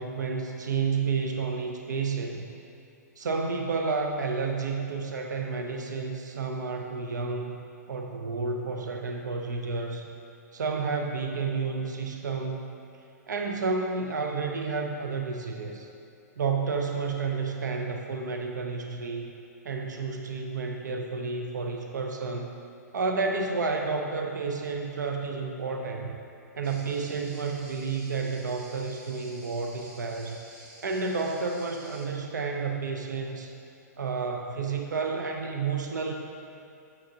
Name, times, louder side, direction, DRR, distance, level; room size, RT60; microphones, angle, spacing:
voice 1, 0.0-2.5 3.2-7.6 7.9-10.1 10.5-12.6 13.3-15.9 16.4-19.3 19.6-22.5 22.9-26.2 26.6-30.4 30.8-33.5 34.0-36.1, right 4 dB, 85° right, 3 dB, 0.6 m, -31 dB
sound 1, 26.6-32.1, right 1 dB, 45° right, 1.2 m, -50 dB
7.2 x 6.4 x 2.7 m, 2.7 s
hypercardioid pair, 125°, 9 cm